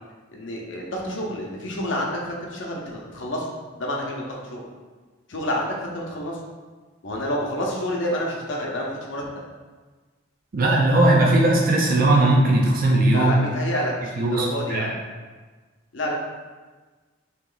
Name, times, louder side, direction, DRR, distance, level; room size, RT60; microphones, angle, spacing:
voice 1, 0.3-3.5 3.8-4.7 5.3-6.4 7.0-9.3 13.1-15.0 15.9-16.1, left 1 dB, 70° left, -2 dB, 0.6 m, -29 dB
voice 2, 10.5-13.3 14.2-14.9, right 2 dB, 50° right, -2 dB, 0.5 m, -18 dB
2.9 x 2.9 x 3.8 m, 1.4 s
head